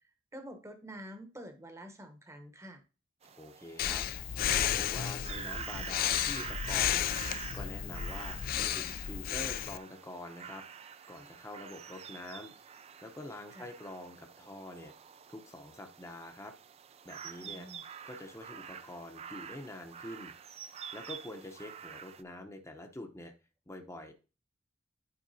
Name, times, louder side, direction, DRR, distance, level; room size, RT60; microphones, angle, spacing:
voice 1, 0.3-2.8 13.5-13.7 17.4-17.8, equal, 15° right, 7 dB, 0.9 m, -47 dB
sound 1, 3.2-22.2, right 7 dB, 35° right, 0.4 m, -48 dB
voice 2, 3.3-12.5 13.0-14.9 15.3-16.5 17.0-17.7 18.1-20.3 20.9-23.3 23.7-24.1, left 1 dB, 15° left, 4 dB, 0.8 m, -46 dB
Breathing, 3.8-9.8, left 10 dB, 50° left, 0.3 m, -33 dB
10.5 x 4.5 x 2.7 m, 0.33 s
head